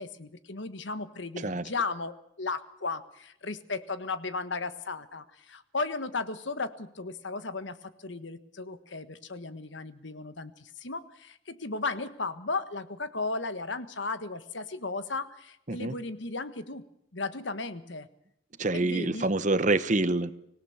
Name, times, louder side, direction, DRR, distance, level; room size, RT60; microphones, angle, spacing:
voice 1, 0.0-16.8 17.1-18.1 18.7-19.3, left 3 dB, 70° left, 12 dB, 1.5 m, -35 dB
voice 2, 18.6-20.3, right 2 dB, 40° right, 13 dB, 1.0 m, -26 dB
25.5 x 17.5 x 7.2 m, 0.77 s
head